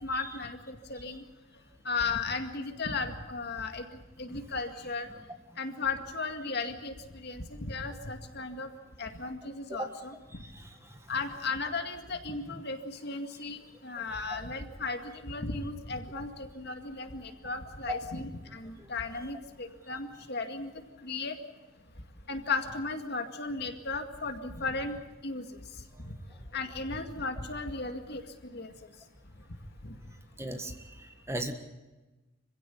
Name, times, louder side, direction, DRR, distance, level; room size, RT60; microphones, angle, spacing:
voice 1, 0.0-1.2 1.8-3.9 4.2-5.1 5.6-8.7 9.0-10.1 11.1-20.7 21.0-21.4 22.3-25.0 25.2-25.6 26.0-26.1 26.5-28.7 29.8-29.9, left 4 dB, 55° left, 6 dB, 2.1 m, -35 dB
voice 2, 30.4-31.5, equal, 15° right, 6 dB, 1.6 m, -37 dB
26.0 x 16.0 x 8.6 m, 1.2 s
head